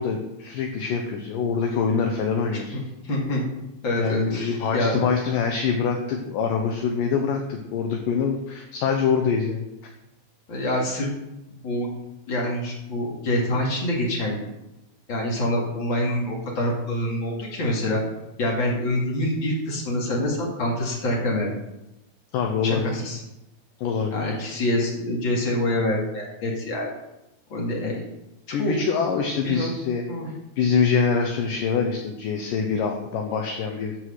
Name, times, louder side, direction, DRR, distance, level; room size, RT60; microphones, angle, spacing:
voice 1, 0.0-2.7 4.0-9.7 22.3-22.9 23.8-24.4 28.5-30.0 30.6-34.0, left 6 dB, 75° left, 3 dB, 2.0 m, -24 dB
voice 2, 2.5-3.4 3.8-5.0 10.5-11.1 11.5-11.9 12.3-14.4 15.1-18.0 18.4-21.5 22.6-23.2 24.1-26.9 27.5-28.0 28.5-28.8 29.4-29.7 30.1-30.3, left 1 dB, 40° left, -2 dB, 2.1 m, -26 dB
14.5 x 4.8 x 6.4 m, 0.93 s
omnidirectional pair, 4.9 m